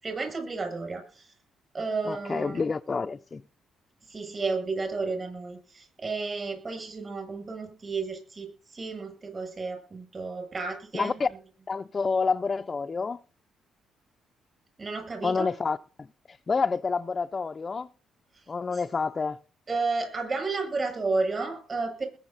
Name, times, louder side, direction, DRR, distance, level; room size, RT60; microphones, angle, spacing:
voice 1, 0.0-1.3 1.7-2.6 4.1-11.2 14.8-15.5 19.7-22.1, right 3 dB, 30° right, 7.4 m, -32 dB
voice 2, 2.0-3.4 10.9-11.3 11.7-13.2 15.2-15.8 16.3-17.9 18.5-19.4, left 4 dB, 35° left, 0.7 m, -28 dB
21.0 x 7.0 x 4.1 m
cardioid pair, 90°, 0 cm